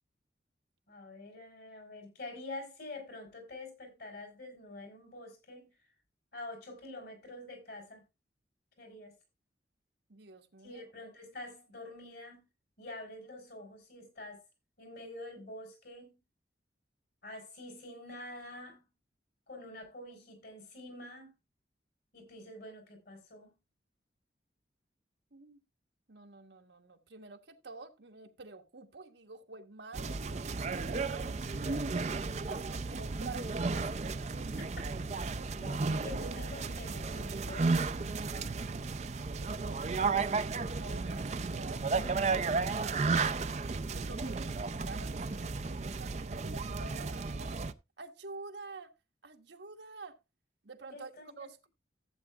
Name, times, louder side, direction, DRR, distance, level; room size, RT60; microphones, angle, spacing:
voice 1, 0.9-5.7 6.3-8.0 8.8-9.1 10.6-12.4 12.8-14.4 14.8-16.2 17.2-18.8 19.5-21.3 22.1-23.5 31.2-31.3 31.6-31.7 34.6-34.8 35.6-37.9 50.9-51.3, left 2 dB, 60° left, 4.1 m, -47 dB
voice 2, 10.1-10.8 25.3-25.6 26.1-31.3 32.3-34.4 38.2-38.6 39.3-43.1 43.9-47.5 48.0-48.9 49.2-50.2 50.6-51.7, right 3 dB, 80° right, 1.3 m, -49 dB
sound 1, 29.9-47.7, right 4 dB, 40° right, 0.5 m, -34 dB
14.5 x 8.3 x 2.4 m
head